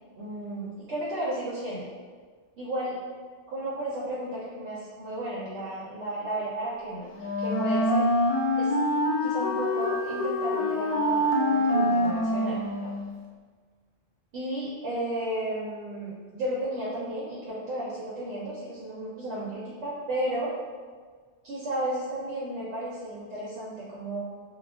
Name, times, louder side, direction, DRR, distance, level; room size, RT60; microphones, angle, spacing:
voice 1, 0.2-1.9 2.6-3.0 3.5-7.1 7.4-8.0 8.6-8.7 9.2-12.9 14.3-20.5 21.4-24.2, right 1 dB, 80° right, -6 dB, 0.9 m, -33 dB
Wind instrument woodwind instrument, 7.1-13.1, left 1 dB, 55° left, 0.6 m, -25 dB
2.3 x 2.0 x 3.3 m, 1.5 s
omnidirectional pair, 1.1 m